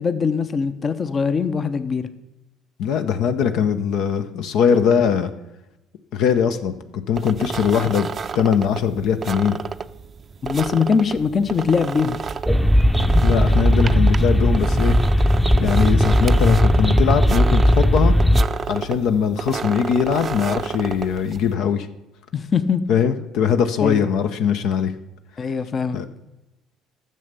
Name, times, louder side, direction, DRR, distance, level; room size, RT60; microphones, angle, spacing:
voice 1, 0.0-2.1 10.4-12.2 22.3-22.8 23.8-24.0 25.4-26.0, left 5 dB, 40° left, 12 dB, 0.7 m, -21 dB
voice 2, 2.8-5.3 6.1-8.1 8.3-9.6 13.2-15.0 15.6-18.1 18.7-21.9 22.9-24.9 25.9-26.1, left 7 dB, 70° left, 8 dB, 0.7 m, -21 dB
sound 1, 7.1-21.5, right 6 dB, 40° right, 0.5 m, -31 dB
sound 2, 12.4-18.4, equal, ahead, 0.6 m, -17 dB
11.0 x 6.9 x 6.7 m, 0.95 s
supercardioid pair, 80°, 0 cm